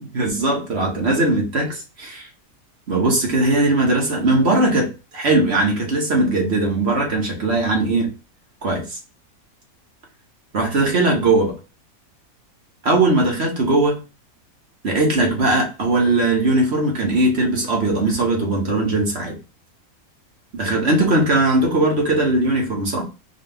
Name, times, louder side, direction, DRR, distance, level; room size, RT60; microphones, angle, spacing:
voice 1, 0.0-2.3 2.9-8.1 8.6-9.0 10.5-11.6 12.8-14.0 14.8-19.4 20.5-23.0, right 2 dB, 50° right, 1.4 m, -19 dB
4.5 x 2.3 x 3.4 m
omnidirectional pair, 1.5 m